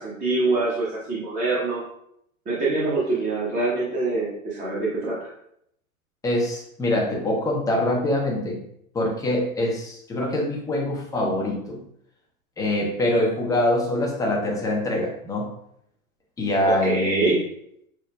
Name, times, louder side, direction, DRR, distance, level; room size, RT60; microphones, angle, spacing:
voice 1, 0.0-1.8 2.5-5.3 16.6-17.4, right 3 dB, 20° right, -7 dB, 0.9 m, -24 dB
voice 2, 6.2-8.6 8.9-11.8 12.6-15.5 16.4-17.3, left 1 dB, 10° left, -1 dB, 0.7 m, -24 dB
5.9 x 2.1 x 2.2 m, 0.73 s
figure-of-eight pair, 100°, 42 cm